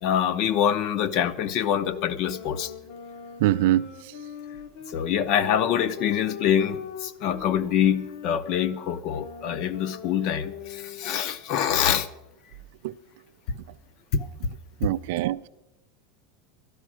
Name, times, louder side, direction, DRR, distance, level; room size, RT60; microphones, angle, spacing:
voice 1, 0.0-2.7 4.9-12.1 13.5-13.6 14.1-14.5, left 9 dB, 40° left, 0.6 m, -25 dB
sound 1, 1.6-11.3, left 8 dB, 70° left, 1.2 m, -41 dB
voice 2, 3.4-3.9 12.8-12.9 14.8-15.5, right 14 dB, 65° right, 0.4 m, -23 dB
12.5 x 11.0 x 6.1 m
supercardioid pair, 165°, 0 cm